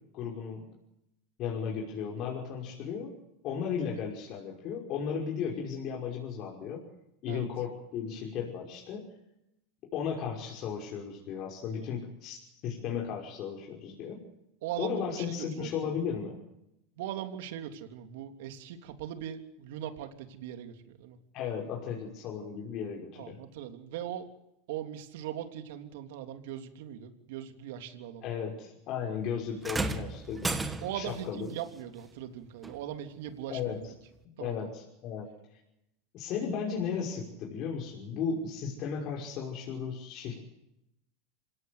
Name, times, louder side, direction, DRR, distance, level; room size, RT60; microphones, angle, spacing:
voice 1, 0.1-0.6 1.4-3.1 3.4-6.8 7.2-9.1 9.9-12.4 12.6-14.3 14.8-16.4 21.3-23.4 28.2-30.5 30.9-31.5 33.5-33.8 34.4-35.6 36.1-40.4, left 7 dB, 50° left, -1 dB, 5.8 m, -35 dB
voice 2, 14.6-15.9 17.0-21.2 23.2-24.3 24.7-28.5 30.8-33.7 34.4-34.7, right 10 dB, 75° right, 6 dB, 3.2 m, -40 dB
sound 1, 29.6-31.2 32.6-32.8 33.7-33.8, right 3 dB, 15° right, 2.3 m, -33 dB
26.5 x 17.5 x 8.2 m, 0.85 s
supercardioid pair, 115°, 0 cm